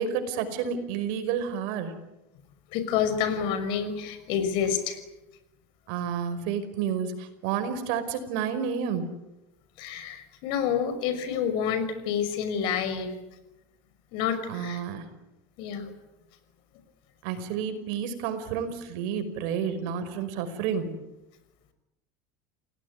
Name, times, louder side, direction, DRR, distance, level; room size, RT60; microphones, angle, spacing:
voice 1, 0.0-1.9 5.9-9.1 14.5-15.1 17.2-20.9, right 7 dB, 70° right, 9 dB, 5.3 m, -30 dB
voice 2, 2.7-5.0 9.8-13.1 14.1-14.8 15.6-15.9, left 7 dB, 65° left, 11 dB, 5.8 m, -28 dB
29.5 x 18.0 x 9.8 m, 0.97 s
supercardioid pair, 140°, 9 cm